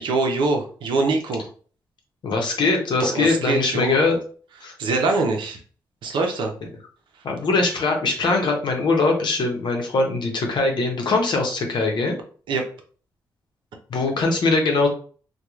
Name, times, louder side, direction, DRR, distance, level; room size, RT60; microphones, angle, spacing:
voice 1, 0.0-1.5 3.1-3.9 4.8-5.6 6.0-6.5 12.5-12.6, right 3 dB, 75° right, 3 dB, 0.6 m, -23 dB
voice 2, 2.2-4.2 4.6-4.7 7.2-12.1 13.9-14.9, left 3 dB, 65° left, 2 dB, 0.8 m, -21 dB
2.9 x 2.2 x 2.3 m, 0.42 s
supercardioid pair, 45°, 8 cm